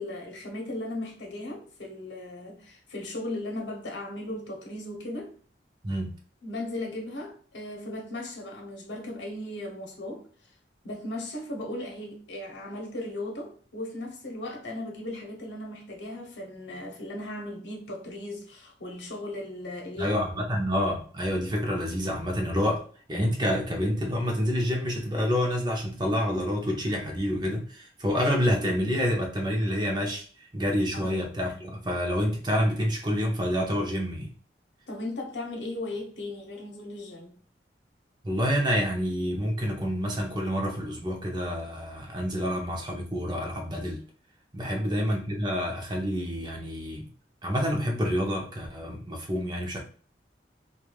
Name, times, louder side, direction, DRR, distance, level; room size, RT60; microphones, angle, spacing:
voice 1, 0.0-5.4 6.4-10.3 10.8-20.2 30.9-31.2 34.9-37.4 44.6-44.9, left 1 dB, 85° left, 0.8 m, -37 dB
voice 2, 5.8-6.1 20.0-22.8 23.1-30.2 30.5-34.3 38.2-44.0 44.5-47.1 47.4-49.8, equal, 25° right, 0.6 m, -28 dB
3.1 x 2.3 x 2.3 m
head